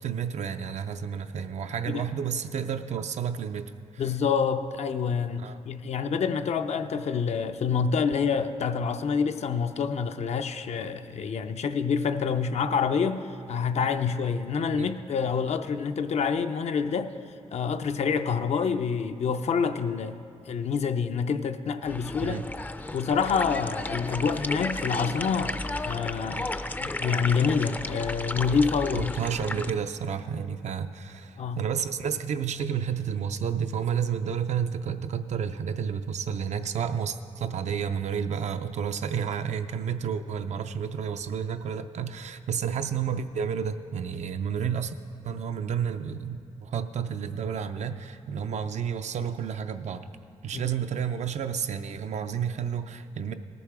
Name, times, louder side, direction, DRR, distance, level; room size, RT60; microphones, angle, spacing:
voice 1, 0.0-4.0 5.4-5.6 14.7-14.9 22.2-22.4 28.9-44.9 45.2-50.0 50.4-53.3, right 7 dB, 75° right, 9 dB, 0.5 m, -31 dB
voice 2, 4.0-17.1 17.5-22.4 22.9-26.5 26.8-29.2 31.4-31.6 50.5-50.6, left 6 dB, 65° left, 8 dB, 0.5 m, -27 dB
sound 1, 21.8-29.7, left 2 dB, 15° left, 0.4 m, -33 dB
18.5 x 6.9 x 4.8 m, 2.4 s
wide cardioid pair, 105°, 12 cm